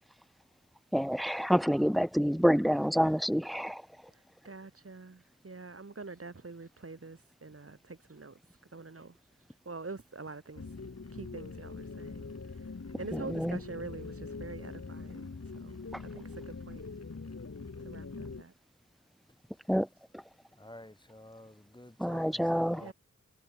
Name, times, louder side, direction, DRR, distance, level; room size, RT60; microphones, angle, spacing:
voice 1, 0.9-3.8 13.4-13.6 19.7-19.9 22.0-22.8, equal, ahead, 1.4 m, -27 dB
voice 2, 4.1-8.4 8.7-9.2 9.7-10.7 11.1-12.6 13.0-15.3 15.5-15.8 16.1-16.8 17.8-18.5 22.8-22.9, right 3 dB, 50° right, 5.2 m, -45 dB
sound 1, 10.5-18.4, left 4 dB, 60° left, 7.0 m, -43 dB
voice 3, 20.6-22.9, left 1 dB, 15° left, 5.3 m, -50 dB
wide cardioid pair, 60°, 29 cm